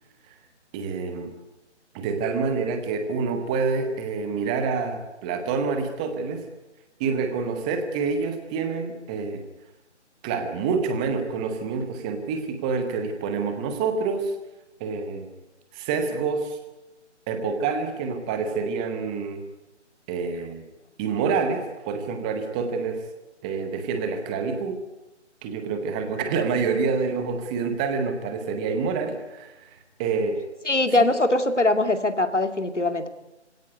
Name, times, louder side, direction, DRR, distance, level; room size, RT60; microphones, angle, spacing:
voice 1, 0.7-1.3 1.9-6.5 7.0-9.4 10.2-14.4 14.8-15.3 15.7-16.6 17.3-19.4 20.1-20.6 21.0-23.0 23.4-24.8 25.4-30.4 31.0-31.1, right 5 dB, 5° right, 7 dB, 0.9 m, -27 dB
voice 2, 30.7-33.1, left 2 dB, 80° left, 8 dB, 2.5 m, -22 dB
25.5 x 17.0 x 9.4 m, 1.0 s
figure-of-eight pair, 150°, 35 cm